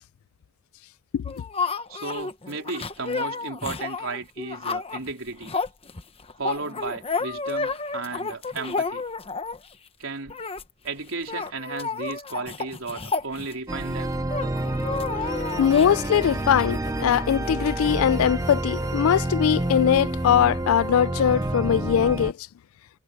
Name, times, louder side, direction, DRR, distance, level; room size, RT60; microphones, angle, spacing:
sound 1, 1.2-9.7 10.3-10.6 10.9-11.0 11.2-13.9 14.3-15.9, left 4 dB, 25° left, 1.1 m, -31 dB
voice 1, 1.9-5.5 6.4-9.0 10.0-10.4 10.8-14.2, right 3 dB, 70° right, 4.0 m, -34 dB
sound 2, 13.7-22.3, right 1 dB, 15° right, 0.6 m, -28 dB
sound 3, 15.3-21.1, left 3 dB, 50° left, 3.5 m, -45 dB
voice 2, 15.6-22.3, left 9 dB, 75° left, 0.3 m, -21 dB
head